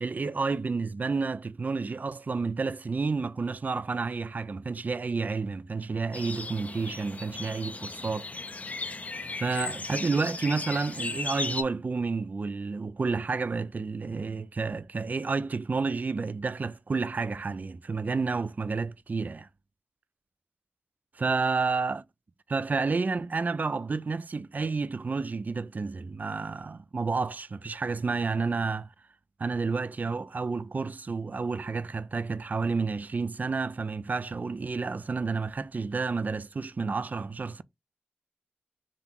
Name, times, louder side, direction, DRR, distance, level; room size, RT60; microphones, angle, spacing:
voice 1, 0.0-8.3 9.4-19.5 21.2-22.0 22.5-28.9 29.4-37.6, right 4 dB, 45° right, 0.3 m, -30 dB
sound 1, 6.1-11.6, left 3 dB, 40° left, 0.5 m, -36 dB
3.7 x 2.9 x 3.7 m
wide cardioid pair, 70°, 4 cm